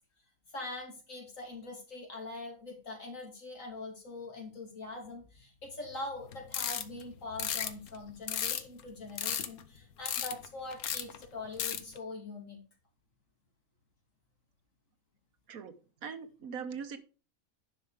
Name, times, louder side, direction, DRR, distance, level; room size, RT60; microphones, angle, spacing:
voice 1, 0.5-12.6, left 2 dB, 60° left, 0 dB, 3.4 m, -43 dB
sound 1, 6.3-7.0 7.4-8.8 9.2-9.8 10.1-10.5 10.7-11.3 11.6-12.0, left 9 dB, 75° left, 1.3 m, -34 dB
voice 2, 16.0-17.0, right 6 dB, 70° right, 10 dB, 1.5 m, -40 dB
10.5 x 5.8 x 5.1 m, 0.35 s
omnidirectional pair, 1.6 m